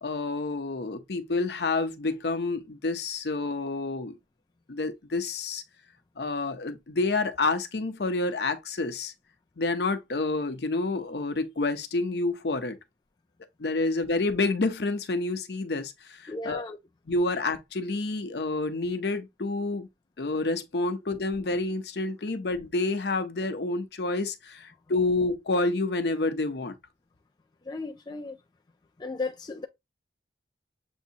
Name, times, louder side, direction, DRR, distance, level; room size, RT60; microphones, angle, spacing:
voice 1, 0.0-4.2 4.7-5.6 6.2-9.1 9.6-12.8 13.6-16.6 17.1-19.9 20.2-26.8, left 3 dB, 65° left, 0.7 m, -28 dB
voice 2, 16.3-16.8 27.6-28.4 29.0-29.7, left 3 dB, 25° left, 0.4 m, -35 dB
7.1 x 2.7 x 2.7 m
head